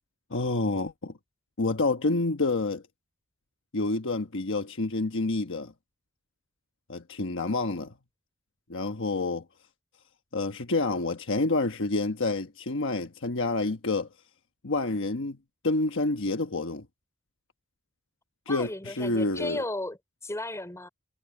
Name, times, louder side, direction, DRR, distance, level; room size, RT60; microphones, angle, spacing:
voice 1, 0.3-1.1 1.6-2.8 3.7-5.7 6.9-7.9 8.7-9.4 10.3-14.1 14.6-15.4 15.6-16.8 18.5-18.7 19.0-19.6, left 2 dB, 60° left, 1.2 m, -28 dB
voice 2, 18.5-20.9, left 1 dB, 15° left, 5.1 m, -35 dB
head